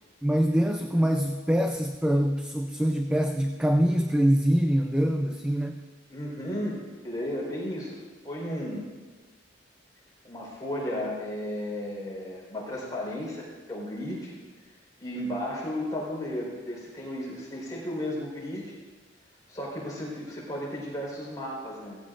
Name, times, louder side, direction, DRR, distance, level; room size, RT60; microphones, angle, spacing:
voice 1, 0.2-5.8, equal, 5° right, 4 dB, 0.4 m, -24 dB
voice 2, 6.1-8.0 8.2-8.8 10.2-14.3 15.0-18.7 19.5-22.0, left 1 dB, 20° left, -5 dB, 4.3 m, -34 dB
17.5 x 16.0 x 2.6 m, 1.4 s
head